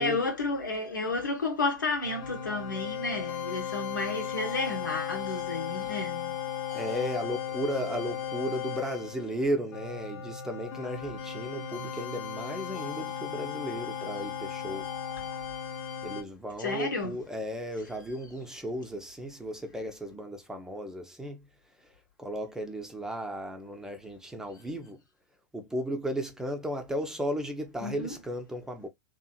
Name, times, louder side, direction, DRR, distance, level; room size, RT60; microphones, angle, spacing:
voice 1, 0.0-6.4 16.6-17.2 27.8-28.2, left 3 dB, 80° left, 1.1 m, -31 dB
sound 1, 2.0-16.2, left 9 dB, 35° left, 0.8 m, -36 dB
voice 2, 6.7-14.9 16.0-21.4 22.2-25.0 25.5-28.9, equal, 5° right, 0.5 m, -35 dB
2.9 x 2.4 x 2.3 m
figure-of-eight pair, 100°, 10 cm